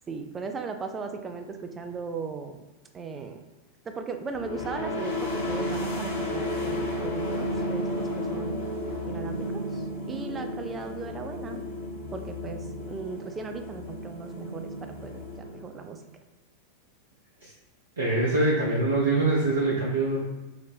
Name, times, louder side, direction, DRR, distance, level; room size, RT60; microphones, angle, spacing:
voice 1, 0.1-2.6 2.9-3.4 3.9-8.7 9.0-11.6 12.1-16.0, right 4 dB, 20° right, 6 dB, 0.3 m, -37 dB
sound 1, 4.3-15.9, left 1 dB, 55° left, 0.9 m, -33 dB
voice 2, 18.0-20.2, right 2 dB, 70° right, -5 dB, 0.5 m, -24 dB
3.8 x 2.0 x 3.3 m, 1.1 s
figure-of-eight pair, 90°, 0 cm